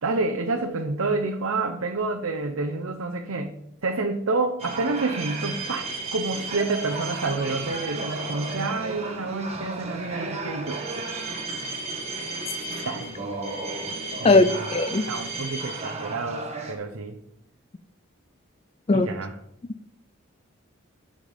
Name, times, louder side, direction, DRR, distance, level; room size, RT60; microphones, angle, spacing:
voice 1, 0.0-11.5 12.9-13.2 14.2-14.7 15.1-17.2 18.9-19.4, right 3 dB, 80° right, 4 dB, 0.7 m, -29 dB
sound 1, 4.6-16.7, right 3 dB, 30° right, 1.3 m, -33 dB
voice 2, 14.2-15.0 18.9-19.1, left 2 dB, 30° left, 13 dB, 0.4 m, -18 dB
11.5 x 5.2 x 5.1 m, 0.76 s
head